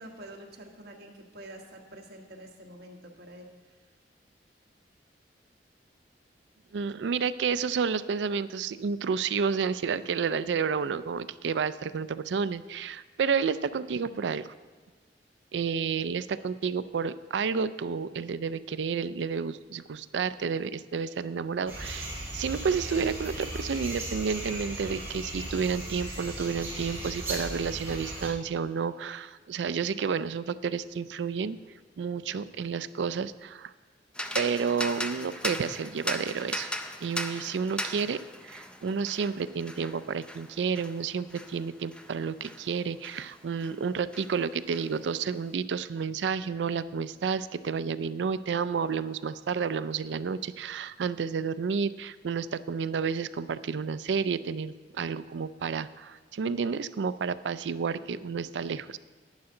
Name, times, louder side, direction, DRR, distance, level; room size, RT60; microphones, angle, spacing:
voice 1, 0.0-3.7, right 1 dB, 65° right, 0 dB, 1.5 m, -47 dB
voice 2, 6.7-14.5 15.5-31.6 32.0-33.7 34.3-36.7 37.0-59.0, right 6 dB, 90° right, 15 dB, 0.4 m, -30 dB
sound 1, 21.7-28.3, right 1 dB, 15° right, 3.5 m, -37 dB
sound 2, 34.1-43.8 44.1-45.4, left 1 dB, 5° left, 0.5 m, -38 dB
11.5 x 9.7 x 3.8 m, 1.4 s
head